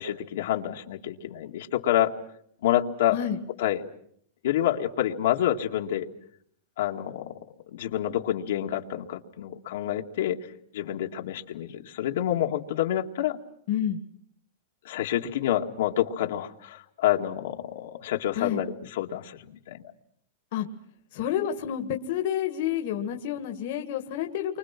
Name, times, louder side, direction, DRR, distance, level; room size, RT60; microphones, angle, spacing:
voice 1, 0.0-2.1 2.6-3.2 3.6-3.8 4.4-6.1 6.8-7.2 7.7-10.4 10.7-13.4 14.8-19.8, left 12 dB, 70° left, 2 dB, 2.2 m, -28 dB
voice 2, 13.7-14.0 18.4-18.6 20.5-20.7 21.1-24.6, left 10 dB, 55° left, 4 dB, 1.9 m, -29 dB
29.5 x 25.0 x 6.0 m, 0.66 s
supercardioid pair, 160°, 0 cm